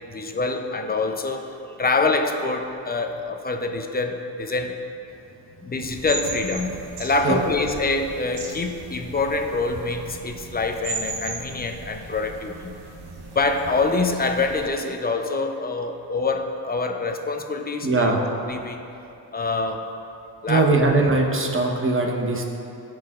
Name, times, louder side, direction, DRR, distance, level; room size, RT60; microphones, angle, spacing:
voice 1, 0.1-4.8 5.6-12.7 13.3-18.1 18.5-18.8 19.3-19.8 20.4-20.9, left 3 dB, 25° left, 5 dB, 0.6 m, -25 dB
sound 1, 5.8-14.7, right 3 dB, 75° right, 1.1 m, -37 dB
voice 2, 17.8-18.2 20.5-22.5, right 2 dB, 30° right, 1 dB, 1.0 m, -20 dB
14.0 x 4.7 x 2.4 m, 2.8 s
cardioid pair, 90°, 41 cm